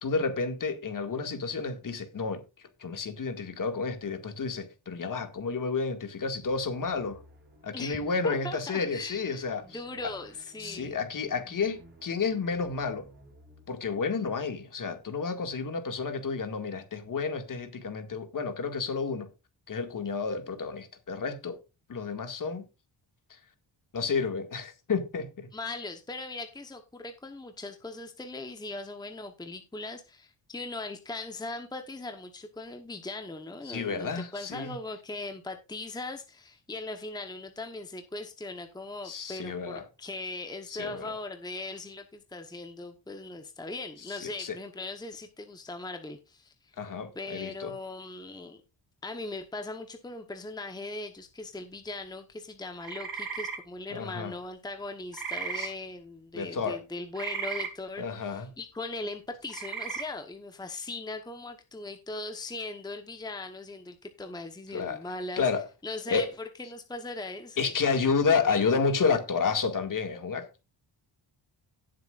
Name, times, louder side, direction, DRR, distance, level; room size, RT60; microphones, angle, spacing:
voice 1, 0.0-2.4 2.8-7.2 7.6-9.8 10.6-13.1 13.7-19.3 19.7-21.6 21.9-22.7 23.3-23.4 23.9-25.5 33.7-34.8 39.0-39.8 40.7-41.1 44.1-44.6 46.8-47.7 53.9-54.3 55.5-55.7 56.3-56.8 58.0-58.5 64.7-65.0 65.4-65.7 66.1-66.3 67.6-70.6, left 5 dB, 45° left, 2.0 m, -30 dB
sound 1, 6.3-14.0, right 2 dB, 25° right, 5.9 m, -55 dB
voice 2, 7.7-9.4 9.7-11.0 25.5-46.7 47.1-48.6 49.0-65.5 65.8-66.3 66.6-67.7, left 2 dB, 10° left, 1.0 m, -39 dB
sound 2, 52.8-53.6 55.1-55.7 57.2-57.7 59.5-60.0, right 6 dB, 50° right, 3.1 m, -35 dB
17.5 x 7.6 x 2.5 m
wide cardioid pair, 165°, 45 cm